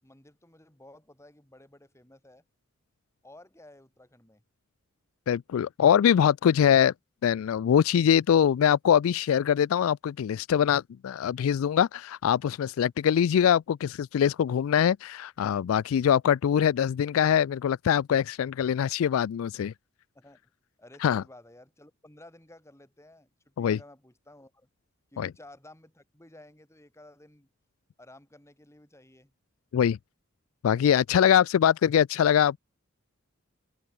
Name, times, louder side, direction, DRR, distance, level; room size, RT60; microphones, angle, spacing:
voice 1, 0.0-2.4 3.2-4.4 20.1-20.5 20.8-24.7 25.1-27.5 28.0-29.3, left 1 dB, 15° left, 4.2 m, -54 dB
voice 2, 5.3-6.9 7.2-19.7 21.0-21.2 23.6-23.8 25.2-25.3 29.7-30.0 30.6-32.6, left 9 dB, 75° left, 0.3 m, -23 dB
open air
head